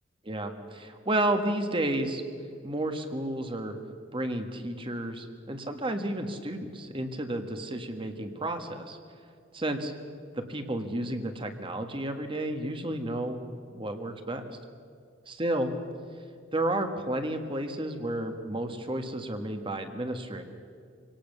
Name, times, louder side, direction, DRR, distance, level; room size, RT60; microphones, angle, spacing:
voice 1, 0.2-2.2 2.6-3.8 4.1-9.0 9.5-9.9 10.3-14.4 15.4-15.7 16.5-20.4, right 1 dB, 25° right, 6 dB, 1.6 m, -31 dB
25.5 x 18.0 x 6.8 m, 2.2 s
head